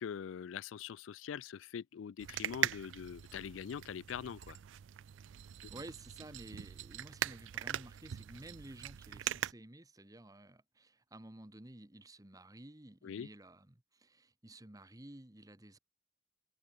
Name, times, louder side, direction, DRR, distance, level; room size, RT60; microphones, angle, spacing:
voice 1, 0.0-4.6 13.0-13.3, left 7 dB, 85° left, 0.4 m, -43 dB
sound 1, 2.2-9.5, right 11 dB, 75° right, 0.4 m, -41 dB
voice 2, 5.7-15.8, right 1 dB, 20° right, 1.4 m, -53 dB
head